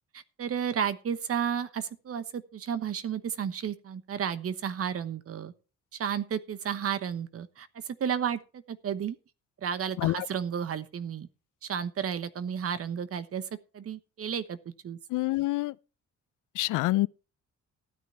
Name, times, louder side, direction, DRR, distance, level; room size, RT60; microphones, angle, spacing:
voice 1, 0.1-5.5 5.9-9.2 9.6-11.3 11.6-13.4 13.7-14.6 14.8-15.0, right 8 dB, 50° right, 1.1 m, -32 dB
voice 2, 15.1-15.7 16.6-17.1, left 18 dB, 85° left, 0.5 m, -26 dB
13.5 x 9.2 x 4.3 m
cardioid pair, 90°, 30 cm